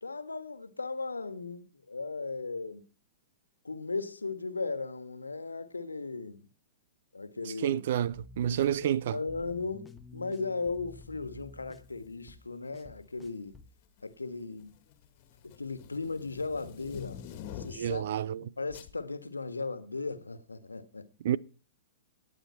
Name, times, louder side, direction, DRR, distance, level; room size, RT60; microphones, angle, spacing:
voice 1, 0.0-2.8 3.6-6.5 7.1-7.8 8.5-8.6 9.1-13.6 14.0-14.8 15.4-17.2 17.5-18.0 18.4-21.1, left 3 dB, 85° left, 1.5 m, -37 dB
voice 2, 7.6-9.2 17.7-18.5 21.2-21.4, right 10 dB, 55° right, 0.7 m, -29 dB
sound 1, 8.1-13.8, left 3 dB, 10° left, 1.1 m, -52 dB
sound 2, 11.8-12.1 13.0-13.5 13.8-18.1 18.7-19.0, left 9 dB, 45° left, 1.7 m, -46 dB
18.5 x 8.9 x 4.4 m
figure-of-eight pair, 110°, 0 cm